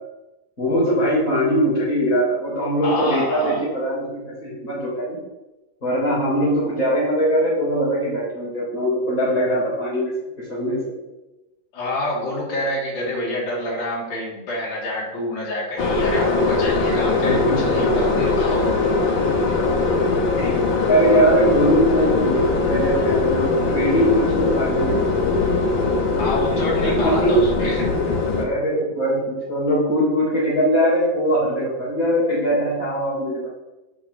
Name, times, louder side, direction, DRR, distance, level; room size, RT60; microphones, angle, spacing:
voice 1, 0.6-5.2 5.8-10.1 10.4-10.8 17.2-17.8 20.4-25.5 26.8-27.5 28.4-33.5, equal, 25° left, -9 dB, 4.3 m, -21 dB
voice 2, 2.8-3.6 11.7-18.7 26.2-28.1, left 1 dB, 80° left, -5 dB, 4.9 m, -27 dB
sound 1, 15.8-28.4, left 3 dB, 55° left, 1.4 m, -21 dB
8.7 x 6.2 x 7.0 m, 1.0 s
omnidirectional pair, 4.0 m